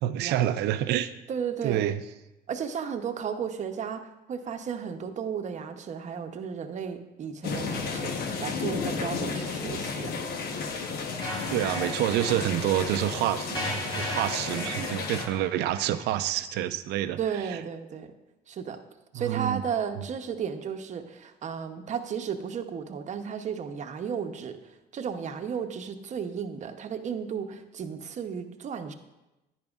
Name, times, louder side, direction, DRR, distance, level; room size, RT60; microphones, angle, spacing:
voice 1, 0.0-1.1 1.6-2.0 11.5-17.2 17.5-17.6 19.1-19.6 20.0-20.1, right 12 dB, 80° right, 12 dB, 0.5 m, -28 dB
voice 2, 1.3-1.8 2.5-10.2 17.2-18.1 18.5-18.8 19.1-28.9, right 7 dB, 45° right, 7 dB, 0.8 m, -34 dB
sound 1, 7.4-15.3, left 5 dB, 65° left, 1.0 m, -33 dB
sound 2, 11.2-16.2, equal, 30° left, 3.5 m, -37 dB
10.5 x 10.0 x 2.4 m, 0.99 s
cardioid pair, 110°, 17 cm